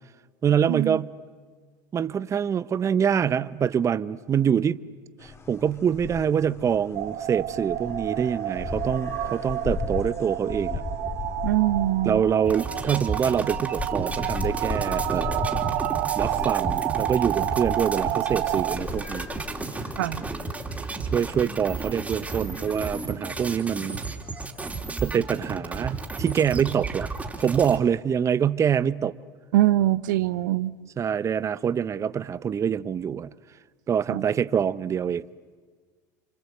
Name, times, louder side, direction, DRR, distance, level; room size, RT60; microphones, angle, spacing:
voice 1, 0.4-1.1 1.9-4.8 5.2-10.8 12.0-15.6 16.1-19.3 21.1-24.0 25.0-27.1 27.4-29.1 31.0-33.3 33.9-35.3, right 8 dB, 30° right, 0.8 m, -25 dB
sound 1, 5.2-23.2, left 4 dB, 25° left, 2.3 m, -37 dB
sound 2, 6.9-18.8, right 14 dB, 60° right, 1.2 m, -30 dB
voice 2, 11.4-12.2 20.0-20.2 29.5-30.7 34.1-34.2, right 14 dB, 75° right, 0.8 m, -23 dB
sound 3, 12.4-27.8, right 3 dB, 15° right, 2.9 m, -33 dB
29.5 x 25.5 x 7.9 m
hypercardioid pair, 90°, 10 cm